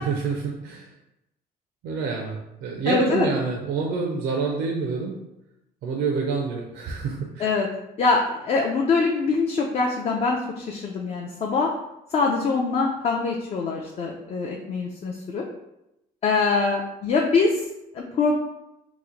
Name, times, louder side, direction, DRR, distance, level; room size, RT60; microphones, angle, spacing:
voice 1, 0.1-0.9 1.8-5.2 5.8-7.5, right 4 dB, 75° right, -1 dB, 0.5 m, -27 dB
voice 2, 2.8-3.3 7.4-7.7 8.0-11.7 12.1-15.4 16.2-17.7 17.9-18.4, left 4 dB, 40° left, 0 dB, 0.4 m, -23 dB
3.0 x 2.1 x 3.7 m, 0.88 s
cardioid pair, 110°, 17 cm